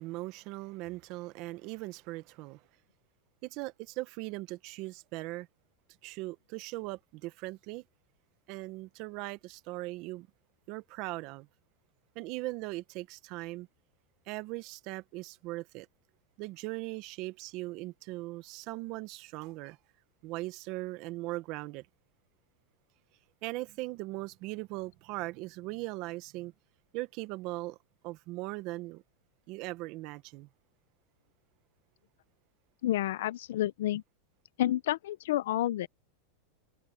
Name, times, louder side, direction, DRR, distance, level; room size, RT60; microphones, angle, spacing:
voice 1, 0.0-2.6 3.4-5.5 6.0-7.8 8.5-10.3 10.7-11.5 12.1-13.7 14.3-15.9 16.4-19.8 20.2-21.9 23.4-26.5 26.9-27.8 28.0-29.0 29.5-30.5, right 20 dB, 45° right, 1.0 m, -39 dB
voice 2, 32.8-34.0 34.6-35.9, left 13 dB, 75° left, 0.6 m, -29 dB
supercardioid pair, 145°, 0 cm